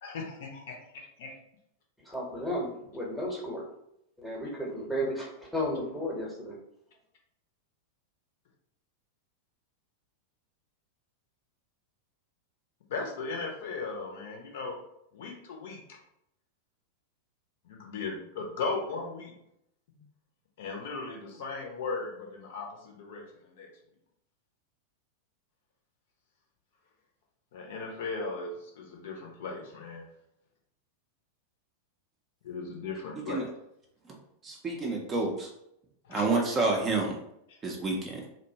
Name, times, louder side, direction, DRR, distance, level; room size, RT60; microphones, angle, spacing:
voice 1, 0.0-1.3 4.9-5.0 12.9-14.7 15.2-15.8 17.7-19.3 20.6-23.7 27.5-30.0 32.5-33.4 36.1-36.2, left 4 dB, 55° left, 1 dB, 0.5 m, -37 dB
voice 2, 2.1-3.6 4.2-5.3 5.5-6.5, equal, ahead, -4 dB, 0.8 m, -33 dB
voice 3, 34.6-35.3 36.1-37.1 37.6-38.0, right 3 dB, 25° right, 0 dB, 0.5 m, -28 dB
2.6 x 2.1 x 2.7 m, 0.78 s
figure-of-eight pair, 90°, 0 cm